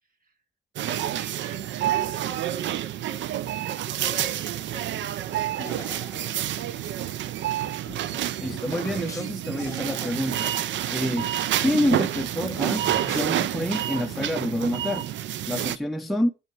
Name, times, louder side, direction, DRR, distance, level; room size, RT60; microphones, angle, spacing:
sound 1, 0.8-15.8, right 12 dB, 70° right, 0.5 m, -29 dB
voice 1, 0.9-6.5 6.9-7.7, right 3 dB, 45° right, 2.0 m, -44 dB
sound 2, 5.6-7.0 7.6-11.0 11.3-11.4 11.6-13.6, left 3 dB, 15° left, 0.9 m, -43 dB
voice 2, 8.4-11.3 11.6-15.1 15.5-16.3, left 1 dB, ahead, 0.5 m, -28 dB
7.6 x 6.5 x 4.4 m
cardioid pair, 90°, 20 cm